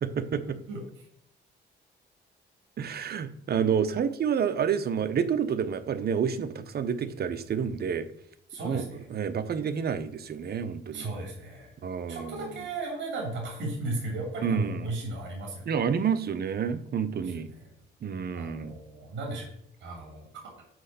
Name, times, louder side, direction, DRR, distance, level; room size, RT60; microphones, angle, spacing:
voice 1, 0.0-0.4 2.8-8.0 8.6-8.8 9.1-11.1 11.8-12.4 14.4-14.8 15.7-17.5 18.0-18.7, right 7 dB, 50° right, 12 dB, 0.9 m, -29 dB
voice 2, 8.5-9.1 10.9-11.7 12.1-15.8 17.2-17.7 18.3-19.5 19.8-20.3, right 2 dB, 70° right, -1 dB, 2.8 m, -35 dB
6.3 x 5.2 x 6.8 m, 0.73 s
cardioid pair, 90°, 20 cm